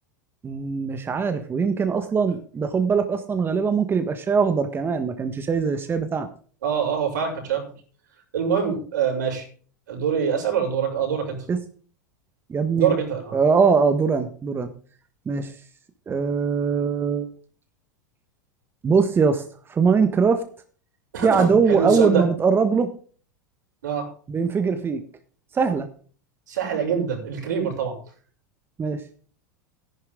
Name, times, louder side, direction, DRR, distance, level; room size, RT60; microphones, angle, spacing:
voice 1, 0.4-6.3 11.5-11.6 12.5-12.9 13.3-14.7 15.2-15.5 16.1-17.3 18.8-20.4 21.2-22.9 24.3-25.0 25.5-25.9 28.8-29.0, right 5 dB, 25° right, 8 dB, 1.5 m, -21 dB
voice 2, 6.6-7.7 8.3-9.5 9.9-11.5 12.7-13.4 21.1-22.2 23.8-24.1 26.5-27.9, right 7 dB, 75° right, 2 dB, 6.7 m, -24 dB
14.0 x 11.5 x 3.8 m, 0.42 s
hypercardioid pair, 90°, 10 cm